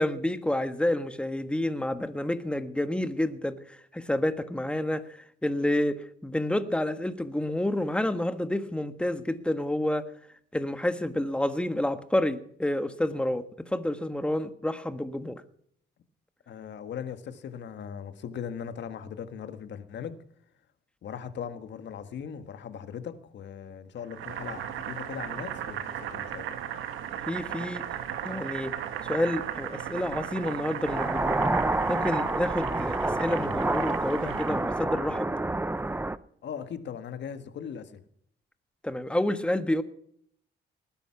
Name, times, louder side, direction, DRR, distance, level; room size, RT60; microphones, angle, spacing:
voice 1, 0.0-10.0 10.5-15.4 27.3-27.8 28.2-28.7 29.1-31.5 31.9-35.3 38.8-39.8, left 1 dB, 5° left, 1.4 m, -29 dB
voice 2, 16.5-20.2 21.0-26.6 36.4-38.0, left 8 dB, 65° left, 1.7 m, -39 dB
Boiling, 24.1-34.7, right 9 dB, 85° right, 1.6 m, -36 dB
sound 1, 30.9-36.2, right 2 dB, 10° right, 0.7 m, -28 dB
19.5 x 10.5 x 5.9 m
cardioid pair, 90°, 20 cm